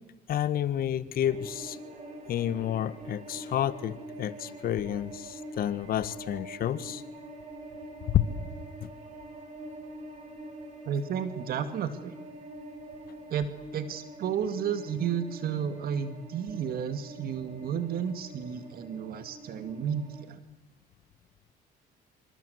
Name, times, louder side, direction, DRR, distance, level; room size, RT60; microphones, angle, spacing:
voice 1, 0.3-1.8 2.3-7.0 8.1-8.3 8.8-8.9, left 11 dB, 60° left, 14 dB, 1.7 m, -30 dB
sound 1, 1.3-20.2, right 1 dB, 40° right, 6.8 m, -45 dB
voice 2, 10.9-12.1 13.3-20.4, right 8 dB, 60° right, 10 dB, 2.1 m, -32 dB
27.0 x 26.0 x 8.1 m, 1.0 s
cardioid pair, 110°, 17 cm